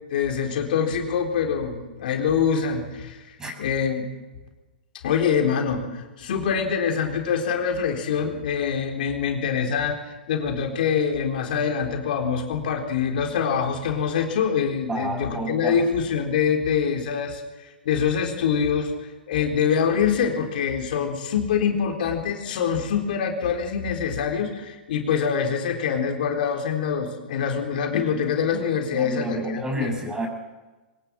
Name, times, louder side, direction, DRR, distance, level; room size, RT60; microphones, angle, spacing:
voice 1, 0.1-4.1 5.0-29.9, left 7 dB, 60° left, 2 dB, 4.0 m, -25 dB
voice 2, 14.9-15.8 28.9-30.3, right 1 dB, 10° right, 4 dB, 6.1 m, -29 dB
23.0 x 20.5 x 7.6 m, 1.2 s
hypercardioid pair, 110°, 5 cm